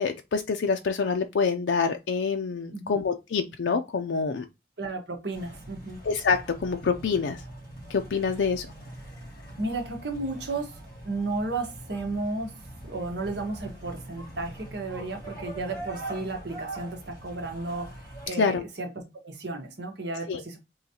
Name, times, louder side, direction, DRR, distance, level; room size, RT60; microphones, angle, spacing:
voice 1, 0.0-4.4 6.0-7.4 7.9-8.7 18.4-18.6 20.3-20.4, left 5 dB, 85° left, 0.4 m, -26 dB
voice 2, 4.8-6.0 9.6-10.7 11.0-12.5 12.8-17.9 18.3-18.9 19.2-20.6, right 2 dB, 70° right, 1.2 m, -33 dB
sound 1, 5.3-18.3, right 1 dB, 20° left, 1.9 m, -42 dB
3.8 x 3.0 x 2.8 m
head